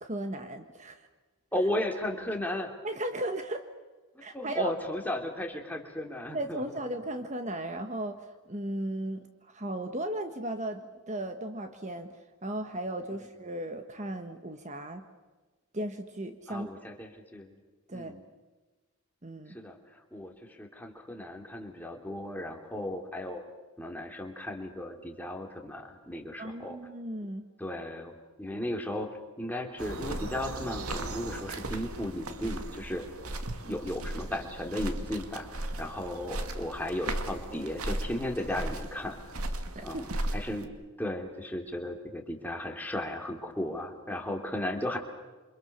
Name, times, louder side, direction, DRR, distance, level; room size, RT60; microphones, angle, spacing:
voice 1, 0.0-1.1 2.8-3.7 4.2-4.7 6.3-15.1 15.7-16.7 17.9-18.2 19.2-19.6 26.4-27.5 39.7-40.1, right 1 dB, 30° right, 7 dB, 1.4 m, -36 dB
voice 2, 1.5-2.7 4.3-6.6 16.5-17.5 17.9-18.2 19.5-23.4 23.8-26.8 27.6-29.1 29.4-33.0 33.6-39.2 39.8-40.0 40.3-45.0, left 1 dB, 10° left, 2 dB, 2.9 m, -35 dB
sound 1, 29.8-40.7, right 1 dB, 85° right, 2.2 m, -37 dB
28.0 x 26.0 x 6.8 m, 1.2 s
head